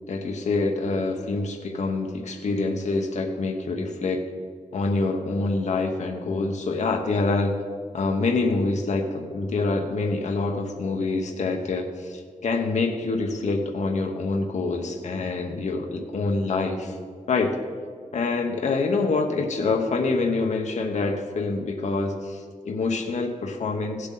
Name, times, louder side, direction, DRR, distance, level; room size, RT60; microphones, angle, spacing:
voice 1, 0.1-4.2 4.7-7.6 7.9-16.9 17.3-17.6 18.1-24.1, left 3 dB, 65° left, 3 dB, 1.1 m, -26 dB
16.5 x 7.9 x 3.9 m, 2.1 s
wide cardioid pair, 120°, 13 cm